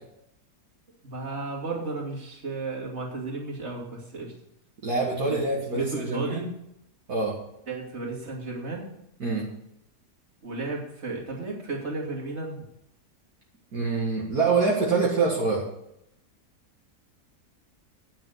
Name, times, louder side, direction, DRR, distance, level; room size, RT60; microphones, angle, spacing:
voice 1, 1.0-4.3 5.2-6.5 7.7-8.9 10.4-12.6, right 3 dB, 45° right, -2 dB, 2.9 m, -34 dB
voice 2, 4.8-6.4 7.1-7.3 9.2-9.4 13.7-15.6, right 4 dB, 65° right, -3 dB, 2.2 m, -25 dB
9.6 x 7.1 x 7.9 m, 0.79 s
omnidirectional pair, 1.7 m